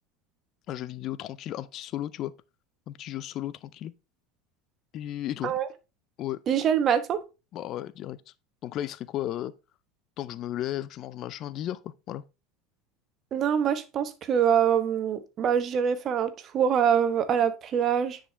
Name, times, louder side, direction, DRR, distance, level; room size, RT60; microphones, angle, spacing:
voice 1, 0.7-2.3 2.9-3.9 4.9-5.6 6.2-6.4 7.5-8.2 8.6-9.5 10.2-12.2, left 12 dB, 50° left, 0.5 m, -34 dB
voice 2, 6.5-7.2 13.3-18.2, right 8 dB, 40° right, 1.2 m, -24 dB
9.8 x 5.0 x 3.3 m
hypercardioid pair, 80°, 0 cm